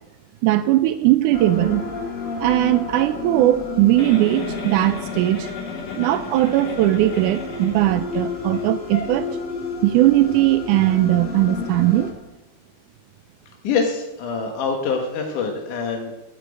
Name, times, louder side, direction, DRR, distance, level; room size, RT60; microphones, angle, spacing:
voice 1, 0.4-1.8 2.4-5.5 5.9-9.3 9.8-12.1, right 15 dB, 85° right, 10 dB, 1.8 m, -19 dB
sound 1, 1.3-12.1, left 4 dB, 25° left, 1.1 m, -32 dB
Giggle, 4.0-8.2 8.5-8.6 8.9-9.1, left 4 dB, 85° left, 5.3 m, -34 dB
voice 2, 13.6-16.1, left 5 dB, 65° left, 2 dB, 2.6 m, -25 dB
10.5 x 8.5 x 8.0 m, 0.98 s
omnidirectional pair, 4.1 m